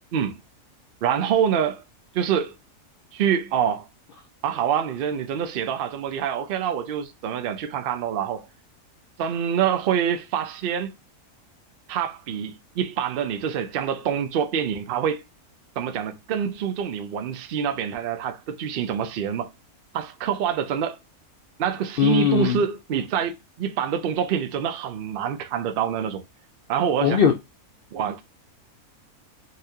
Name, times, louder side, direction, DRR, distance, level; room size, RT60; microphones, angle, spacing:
voice 1, 1.0-1.8 2.1-2.5 3.1-3.9 4.4-8.5 9.2-10.9 11.9-15.2 15.8-19.5 19.9-21.0 21.6-26.2 26.7-27.2 27.9-28.2, right 8 dB, 80° right, 0.5 m, -26 dB
voice 2, 22.0-22.6 27.0-27.3, left 8 dB, 85° left, 0.4 m, -19 dB
4.0 x 2.5 x 2.6 m
omnidirectional pair, 1.6 m